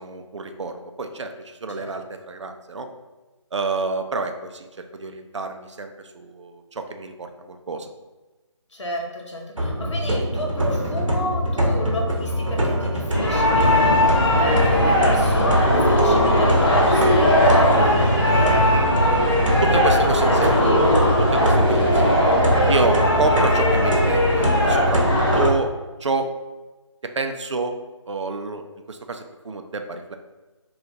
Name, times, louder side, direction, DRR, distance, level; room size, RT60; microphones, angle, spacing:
voice 1, 0.0-2.9 3.5-7.9 19.6-20.6 21.3-22.2 22.7-25.7 26.0-26.3 27.0-27.7 28.1-28.6 28.9-30.2, right 3 dB, 65° right, 6 dB, 0.4 m, -28 dB
voice 2, 8.7-18.7 19.9-21.1 23.0-23.2 25.4-25.5, left 1 dB, 65° left, 0 dB, 0.9 m, -30 dB
sound 1, 9.6-25.5, equal, 85° right, 0.8 m, -23 dB
sound 2, 13.1-25.5, left 1 dB, 45° left, 1.2 m, -19 dB
4.0 x 2.4 x 2.9 m, 1.2 s
figure-of-eight pair, 155°, 16 cm